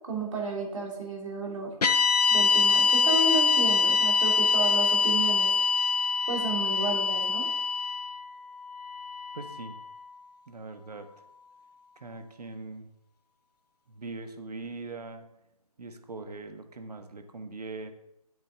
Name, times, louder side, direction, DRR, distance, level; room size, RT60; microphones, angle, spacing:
voice 1, 0.1-1.7 2.3-5.5 6.3-7.5, right 3 dB, 55° right, 0 dB, 3.0 m, -32 dB
sound 1, 1.8-10.1, left 5 dB, 80° left, 0.8 m, -25 dB
voice 2, 9.3-9.8 10.5-11.1 12.0-12.9 13.9-15.3 15.8-17.9, right 3 dB, 80° right, 7 dB, 1.4 m, -41 dB
10.0 x 8.0 x 3.8 m, 0.83 s
hypercardioid pair, 160°, 20 cm